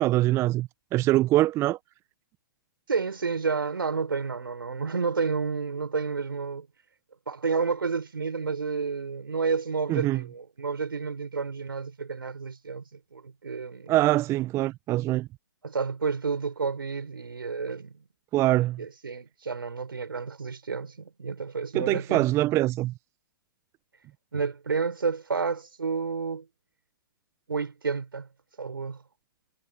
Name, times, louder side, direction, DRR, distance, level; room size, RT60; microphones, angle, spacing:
voice 1, 0.0-1.8 9.9-10.2 13.9-15.3 18.3-18.8 21.7-22.9, right 16 dB, 25° right, 0.7 m, -24 dB
voice 2, 2.9-6.7 7.3-13.9 15.6-18.0 18.8-22.2 24.3-26.5 27.5-28.3 28.6-29.0, right 5 dB, 80° right, 4.6 m, -30 dB
figure-of-eight pair, 120°, 12 cm